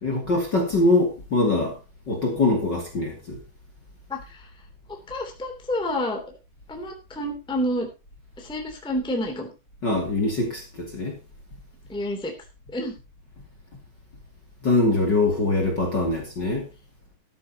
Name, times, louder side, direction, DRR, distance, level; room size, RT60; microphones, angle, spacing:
voice 1, 0.0-1.8 2.1-3.4 9.8-11.1 14.6-16.7, left 2 dB, 30° left, 2.8 m, -23 dB
voice 2, 4.1-4.5 4.9-6.2 6.7-7.9 8.4-9.5 11.9-12.3 12.7-12.9, left 1 dB, ahead, 2.4 m, -29 dB
14.5 x 13.0 x 2.9 m
omnidirectional pair, 4.3 m